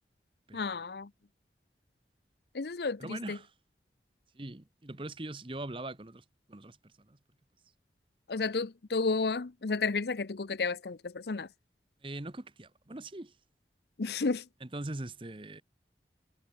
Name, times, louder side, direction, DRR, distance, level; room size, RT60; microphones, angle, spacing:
voice 1, 0.5-1.1 2.5-3.4 8.3-11.5 14.0-14.5, left 4 dB, 70° left, 0.7 m, -32 dB
voice 2, 3.0-3.5 4.3-7.2 12.0-13.3 14.6-15.6, right 2 dB, 30° right, 1.0 m, -42 dB
head